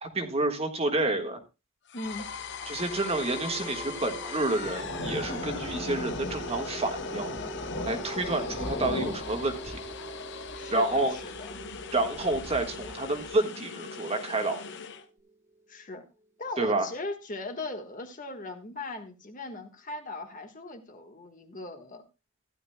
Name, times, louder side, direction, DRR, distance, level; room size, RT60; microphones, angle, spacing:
voice 1, 0.0-1.4 2.7-7.4 7.8-9.8 10.7-11.1 11.9-14.6 16.6-16.9, right 2 dB, 30° right, 5 dB, 1.5 m, -29 dB
sound 1, 1.9-15.1, left 6 dB, 60° left, 0.8 m, -41 dB
voice 2, 1.9-2.3 10.5-11.6 15.7-16.0 16.4-22.0, left 2 dB, 40° left, 5 dB, 1.4 m, -39 dB
Thunder, 2.1-13.3, left 1 dB, 85° left, 3.0 m, -39 dB
sound 2, 2.6-16.5, right 4 dB, 10° right, 1.0 m, -45 dB
15.5 x 11.0 x 2.2 m, 0.27 s
head